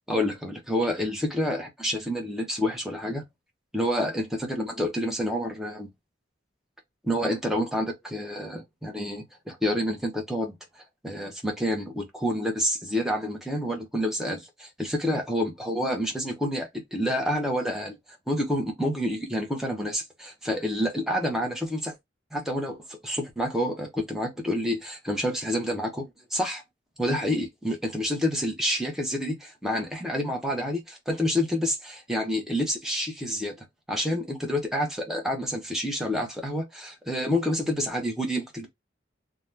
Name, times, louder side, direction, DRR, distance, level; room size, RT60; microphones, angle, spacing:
voice 1, 0.1-3.2 3.7-5.9 7.0-10.6 11.0-18.0 18.3-21.9 22.3-26.6 27.0-38.7, equal, ahead, 0.7 m, -28 dB
2.6 x 2.3 x 3.2 m
head